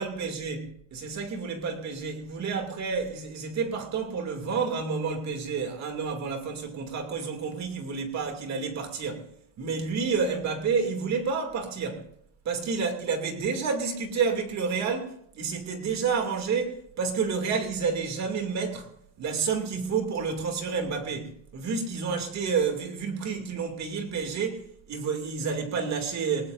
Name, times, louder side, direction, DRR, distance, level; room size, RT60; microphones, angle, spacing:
voice 1, 0.0-9.3 9.6-12.1 12.4-18.9 19.2-26.5, right 5 dB, 35° right, 2.7 m, -30 dB
21.0 x 18.5 x 2.6 m
cardioid pair, 150°, 44 cm